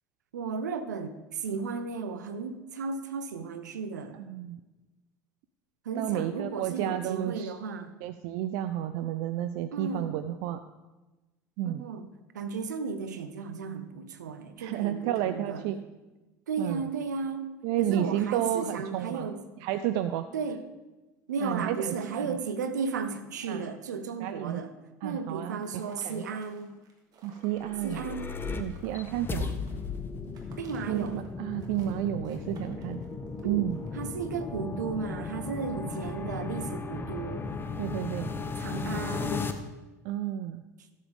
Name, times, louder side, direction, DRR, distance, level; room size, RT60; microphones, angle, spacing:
voice 1, 0.3-4.2 5.8-7.9 9.7-10.2 11.6-12.1 12.3-15.6 16.5-17.5 17.8-19.4 20.3-20.6 21.3-24.7 25.0-26.7 27.8-28.3 30.6-31.2 33.4-33.7 33.9-37.5 38.6-39.5, right 5 dB, 80° right, 11 dB, 0.8 m, -34 dB
voice 2, 4.3-4.6 6.0-7.5 8.0-10.6 11.6-11.8 14.6-15.8 16.6-16.8 17.6-19.3 19.6-20.3 21.4-22.4 23.5-23.7 24.2-24.6 25.0-26.3 27.2-28.0 28.5-29.5 30.9-33.0 33.4-33.8 37.8-38.3 40.0-40.6, right 12 dB, 60° right, 11 dB, 0.4 m, -31 dB
sound 1, 25.6-34.6, right 4 dB, 45° right, 2.1 m, -57 dB
sound 2, 27.5-39.5, left 4 dB, 25° left, 0.9 m, -36 dB
15.5 x 7.5 x 3.5 m, 1.1 s
figure-of-eight pair, 70°, 9 cm